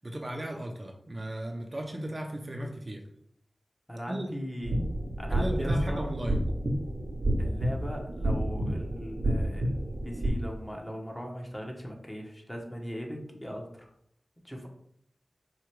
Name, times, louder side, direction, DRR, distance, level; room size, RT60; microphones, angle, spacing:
voice 1, 0.0-3.0 4.1-4.3 5.3-6.4, right 1 dB, 35° right, 1 dB, 0.7 m, -35 dB
voice 2, 3.9-4.8 5.2-6.1 7.4-13.9 14.4-14.7, equal, 15° left, 0 dB, 1.1 m, -39 dB
sound 1, 4.6-10.3, right 1 dB, 85° right, 0.9 m, -29 dB
4.8 x 2.4 x 4.6 m, 0.71 s
wide cardioid pair, 55°, 0 cm